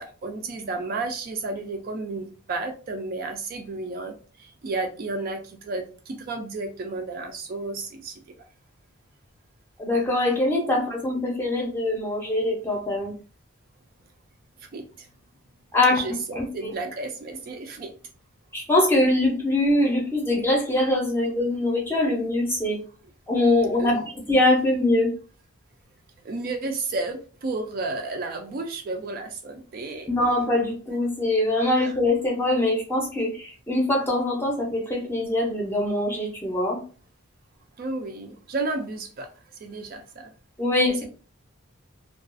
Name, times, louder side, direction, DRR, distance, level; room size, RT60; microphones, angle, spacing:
voice 1, 0.0-8.2 14.6-15.1 15.9-17.9 23.8-24.0 26.2-30.1 31.8-31.9 37.8-39.3 39.6-40.3 40.9-41.1, right 3 dB, 40° right, 4 dB, 0.3 m, -32 dB
voice 2, 9.8-13.1 15.7-16.0 16.4-16.7 18.5-22.8 23.3-23.9 24.3-25.1 30.1-36.8 40.6-41.1, left 1 dB, 10° left, -1 dB, 0.6 m, -23 dB
2.3 x 2.3 x 2.4 m, 0.38 s
head